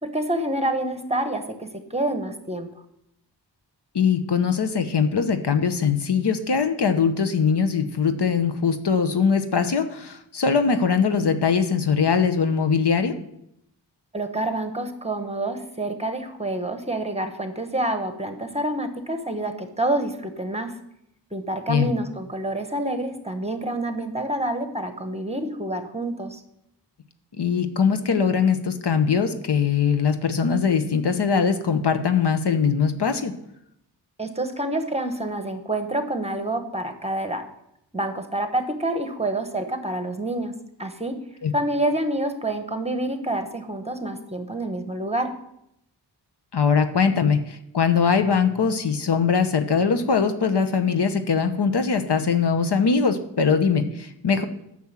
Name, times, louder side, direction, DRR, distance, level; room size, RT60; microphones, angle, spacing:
voice 1, 0.0-2.7 14.1-20.7 21.3-26.4 34.2-37.5 37.9-41.2 41.5-45.4, right 1 dB, 15° right, 7 dB, 1.2 m, -27 dB
voice 2, 3.9-13.2 21.7-21.9 27.4-33.3 41.4-41.5 46.5-54.4, left 6 dB, 65° left, 9 dB, 0.9 m, -21 dB
9.5 x 6.2 x 7.3 m, 0.78 s
wide cardioid pair, 75°, 43 cm